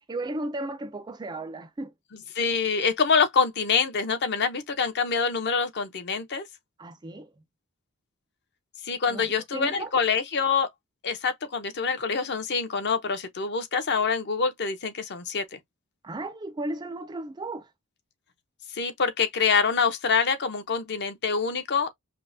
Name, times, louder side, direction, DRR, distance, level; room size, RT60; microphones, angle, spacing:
voice 1, 0.0-1.9 6.8-7.3 9.1-9.9 16.0-17.7, right 2 dB, 20° right, 0.4 m, -35 dB
voice 2, 2.3-6.5 8.8-10.7 11.0-15.6 18.7-21.9, left 5 dB, 50° left, 0.7 m, -25 dB
5.3 x 2.1 x 2.6 m
head